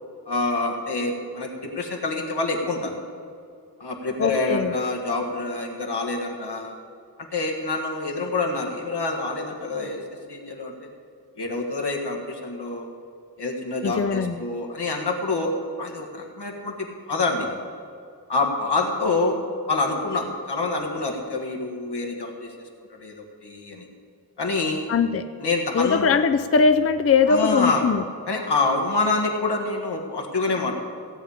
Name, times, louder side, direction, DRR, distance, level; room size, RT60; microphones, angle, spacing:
voice 1, 0.3-3.0 3.8-6.7 7.3-10.0 10.3-10.8 11.4-12.9 13.4-15.5 15.8-17.5 18.3-19.4 19.7-22.5 23.0-23.1 23.4-23.9 24.4-24.9 25.4-26.1 27.3-27.9 28.3-30.7, left 3 dB, 85° left, 1 dB, 1.8 m, -26 dB
voice 2, 4.2-4.7 13.8-14.4 24.9-25.2 25.7-28.0, left 5 dB, 35° left, 10 dB, 0.5 m, -20 dB
16.0 x 8.2 x 5.0 m, 2.3 s
wide cardioid pair, 75°, 39 cm